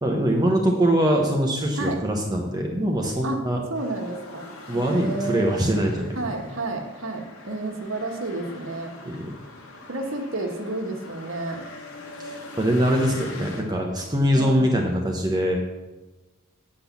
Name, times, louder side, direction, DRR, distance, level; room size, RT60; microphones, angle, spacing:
voice 1, 0.0-3.6 4.7-6.2 9.0-9.3 12.2-15.6, equal, 20° right, 0 dB, 1.0 m, -23 dB
sound 1, 3.7-13.6, left 3 dB, 75° left, 1.6 m, -42 dB
voice 2, 3.7-4.5 4.7-5.6 6.1-8.9 9.9-11.7 14.3-14.6, right 2 dB, 65° right, 3 dB, 1.4 m, -30 dB
8.7 x 6.0 x 7.1 m, 1.1 s
head